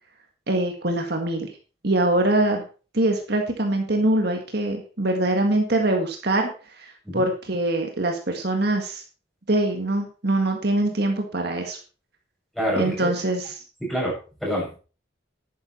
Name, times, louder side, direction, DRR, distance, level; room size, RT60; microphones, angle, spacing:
voice 1, 0.5-1.5 1.8-2.6 2.9-6.9 7.1-9.0 9.5-11.8 12.8-13.6, right 1 dB, 55° right, 3 dB, 1.8 m, -23 dB
voice 2, 12.5-13.1 13.8-14.1 14.4-14.8, equal, ahead, -5 dB, 7.0 m, -26 dB
11.0 x 9.6 x 4.4 m, 0.36 s
head